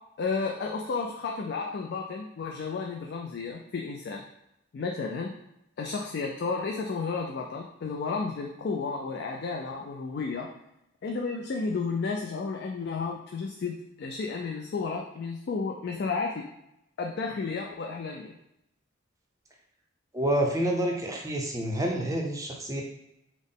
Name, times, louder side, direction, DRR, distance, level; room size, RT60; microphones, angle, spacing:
voice 1, 0.2-4.2 4.7-5.3 5.8-10.5 11.0-16.5 17.0-18.4, left 4 dB, 55° left, 1 dB, 0.3 m, -32 dB
voice 2, 20.1-22.8, right 1 dB, 15° right, 1 dB, 0.5 m, -28 dB
3.6 x 2.0 x 3.7 m, 0.85 s
head